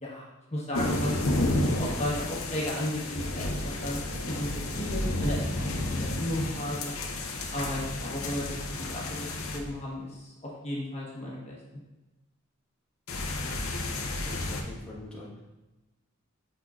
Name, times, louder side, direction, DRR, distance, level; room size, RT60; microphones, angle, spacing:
voice 1, 0.0-4.0 4.3-6.9 7.5-11.6, left 1 dB, 30° left, -4 dB, 1.1 m, -34 dB
sound 1, 0.7-9.6 13.1-14.6, left 1 dB, 80° left, 0.8 m, -31 dB
voice 2, 13.5-15.4, left 2 dB, 5° left, -7 dB, 1.2 m, -45 dB
6.6 x 5.9 x 2.4 m, 1.1 s
head